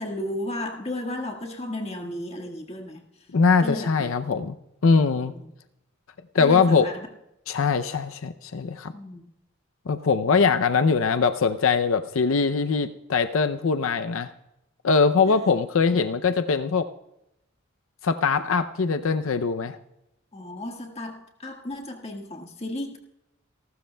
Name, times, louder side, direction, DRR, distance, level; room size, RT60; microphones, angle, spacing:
voice 1, 0.0-3.0 3.6-4.1 5.2-5.4 6.4-7.1 8.9-9.3 15.3-15.4 20.3-23.0, left 1 dB, 30° left, 2 dB, 1.6 m, -34 dB
voice 2, 3.3-4.6 4.8-5.3 6.3-6.9 7.5-8.9 9.9-14.3 14.8-16.9 18.0-19.8, left 5 dB, 80° left, 9 dB, 0.5 m, -22 dB
28.5 x 12.5 x 2.3 m, 0.88 s
head